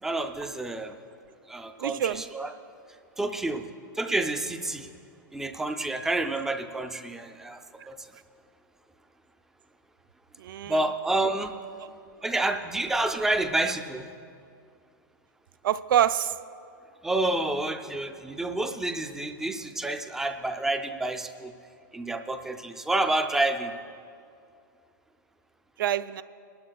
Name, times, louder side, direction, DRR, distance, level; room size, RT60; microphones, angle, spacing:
voice 1, 0.0-1.0 1.5-2.5 3.2-3.7 3.9-4.9 5.3-7.6 7.9-8.1 10.6-11.5 12.2-14.1 17.0-21.5 21.9-23.7, right 2 dB, 5° right, 7 dB, 0.3 m, -29 dB
voice 2, 1.8-2.2 10.4-10.7 15.6-16.3 25.8-26.2, right 10 dB, 75° right, 14 dB, 0.4 m, -25 dB
20.5 x 12.0 x 2.3 m, 2.4 s
supercardioid pair, 160°, 11 cm